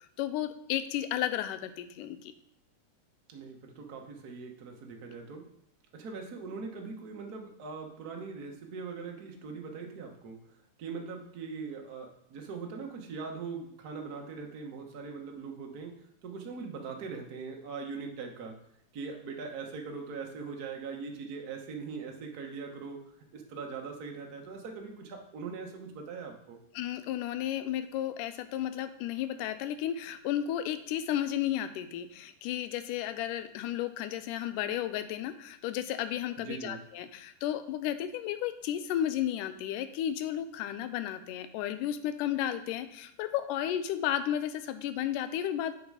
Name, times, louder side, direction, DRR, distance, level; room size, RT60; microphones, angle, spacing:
voice 1, 0.2-2.3 26.7-45.8, left 11 dB, 90° left, 10 dB, 2.2 m, -33 dB
voice 2, 3.3-5.4 5.9-10.4 10.8-15.9 16.2-18.5 18.9-23.0 23.3-26.6 36.4-36.8, right 5 dB, 90° right, 1 dB, 0.8 m, -41 dB
9.6 x 4.6 x 4.8 m, 0.77 s
omnidirectional pair, 3.6 m